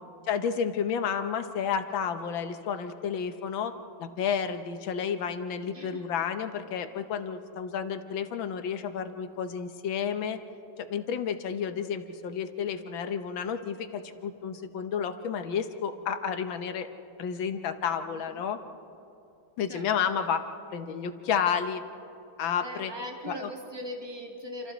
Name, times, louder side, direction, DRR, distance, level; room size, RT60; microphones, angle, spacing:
voice 1, 0.3-10.4 10.8-16.9 17.2-18.6 19.6-20.4 20.7-21.8 22.4-22.9 23.3-23.5, left 7 dB, 80° left, 8 dB, 1.8 m, -31 dB
voice 2, 5.7-6.1 18.1-18.4 19.7-19.8 20.2-20.3 22.6-24.7, equal, 15° right, 1 dB, 2.2 m, -40 dB
28.0 x 27.5 x 4.1 m, 2.8 s
omnidirectional pair, 2.1 m